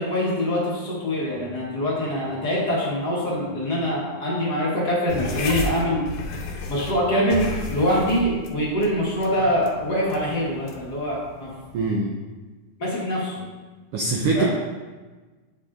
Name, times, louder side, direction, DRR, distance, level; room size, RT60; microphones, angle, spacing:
voice 1, 0.0-6.0 6.7-11.5 12.8-13.4 14.3-14.5, equal, 40° left, -6 dB, 1.6 m, -24 dB
sound 1, 5.1-12.0, left 3 dB, 80° left, 2.2 m, -34 dB
voice 2, 11.7-12.2 13.9-14.5, right 3 dB, 80° right, 0 dB, 1.3 m, -23 dB
8.7 x 7.8 x 2.5 m, 1.3 s
omnidirectional pair, 3.5 m